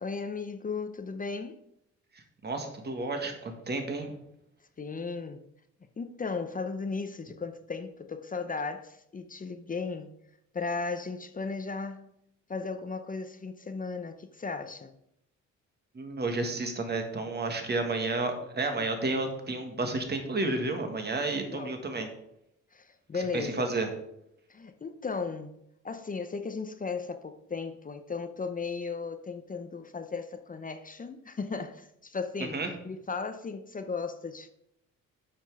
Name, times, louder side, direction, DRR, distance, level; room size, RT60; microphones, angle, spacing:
voice 1, 0.0-1.6 4.8-5.4 6.0-10.2 10.5-12.2 12.5-15.0 21.5-21.8 22.7-23.7 24.5-32.6 32.8-34.5, left 4 dB, 25° left, 0.7 m, -36 dB
voice 2, 2.1-4.1 15.9-22.1 23.3-23.9 32.5-32.7, right 2 dB, 35° right, 1.8 m, -31 dB
8.5 x 6.0 x 4.8 m
cardioid pair, 90°, 30 cm